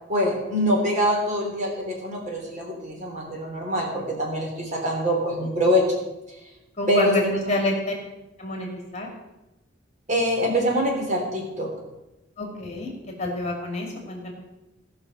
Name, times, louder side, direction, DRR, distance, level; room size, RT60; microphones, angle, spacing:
voice 1, 0.1-5.9 6.9-7.5 10.1-11.7, equal, 40° right, 0 dB, 3.1 m, -24 dB
voice 2, 6.8-7.2 7.5-7.9 8.4-8.7 8.9-9.1 12.4-12.9 13.2-14.3, left 2 dB, 35° left, 1 dB, 2.5 m, -27 dB
17.0 x 5.8 x 6.4 m, 0.98 s
head